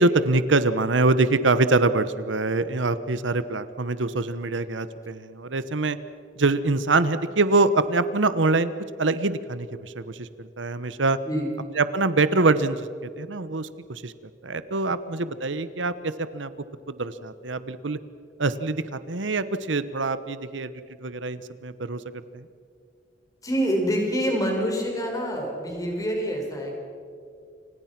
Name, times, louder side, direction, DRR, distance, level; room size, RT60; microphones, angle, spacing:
voice 1, 0.0-6.0 6.4-8.7 9.0-11.2 11.7-12.9 13.2-14.1 14.4-16.5 16.9-18.0 18.4-20.7 21.0-22.0 22.3-22.5, right 3 dB, 85° right, 13 dB, 1.1 m, -24 dB
voice 2, 11.2-11.6 23.4-26.8, equal, 20° left, 1 dB, 5.6 m, -26 dB
30.0 x 26.5 x 6.0 m, 2.4 s
head